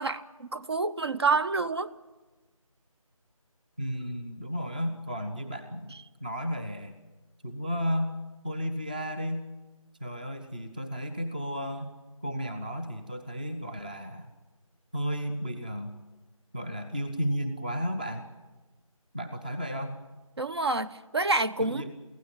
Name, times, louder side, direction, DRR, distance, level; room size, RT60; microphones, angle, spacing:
voice 1, 0.0-1.9 20.4-21.9, right 3 dB, 50° right, 0.8 m, -28 dB
voice 2, 3.8-5.9 6.2-6.9 7.4-8.1 8.4-9.5 10.0-11.9 12.2-14.3 14.9-16.0 16.5-18.3 19.1-20.0 21.6-21.9, equal, 15° right, 0.6 m, -33 dB
23.5 x 16.0 x 8.9 m
figure-of-eight pair, 165°, 18 cm